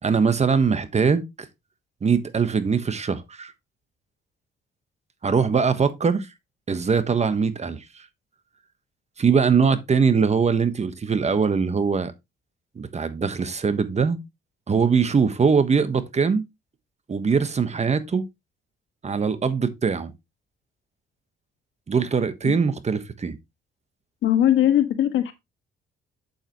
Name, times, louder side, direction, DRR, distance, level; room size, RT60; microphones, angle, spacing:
voice 1, 0.0-1.5 2.0-3.5 5.2-6.3 6.7-8.0 9.2-12.1 12.7-14.2 14.7-16.4 17.1-18.3 19.0-20.1 21.9-23.4, right 5 dB, 35° right, 1.2 m, -22 dB
voice 2, 24.2-25.3, left 11 dB, 75° left, 1.6 m, -20 dB
7.9 x 7.5 x 3.0 m
cardioid pair, 90°, 20 cm